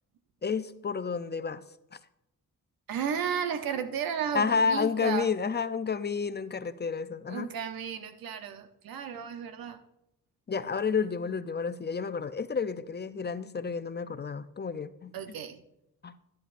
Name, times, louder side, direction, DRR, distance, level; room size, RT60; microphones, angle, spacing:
voice 1, 0.4-1.6 1.9-2.0 4.3-7.5 10.5-15.1 16.0-16.1, left 5 dB, 30° left, 13 dB, 0.5 m, -30 dB
voice 2, 2.9-5.3 7.3-9.8 15.1-15.6, right 7 dB, 90° right, 9 dB, 0.8 m, -33 dB
12.0 x 10.5 x 2.5 m, 0.84 s
cardioid pair, 65°, 34 cm